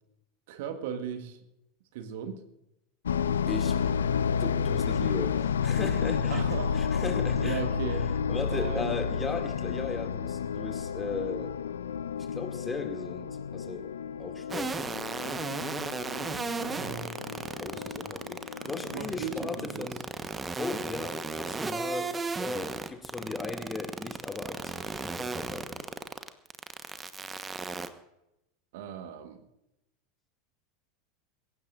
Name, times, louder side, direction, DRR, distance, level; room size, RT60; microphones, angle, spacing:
voice 1, 0.5-1.4 1.9-2.4 6.3-7.0 7.4-8.1 8.5-9.0 16.6-17.4 18.9-19.9 28.7-29.4, right 7 dB, 55° right, 8 dB, 1.4 m, -37 dB
sound 1, 3.1-19.7, left 7 dB, 70° left, 0.5 m, -31 dB
voice 2, 3.5-3.8 4.4-6.4 6.7-7.6 7.9-8.0 8.3-11.5 12.3-13.9 14.2-15.1 17.6-20.0 20.6-22.1 22.4-25.8, left 4 dB, 15° left, 5 dB, 2.4 m, -37 dB
sound 2, 14.5-27.9, right 4 dB, 15° right, 1.2 m, -34 dB
22.0 x 17.0 x 2.6 m, 0.88 s
figure-of-eight pair, 80°, 0 cm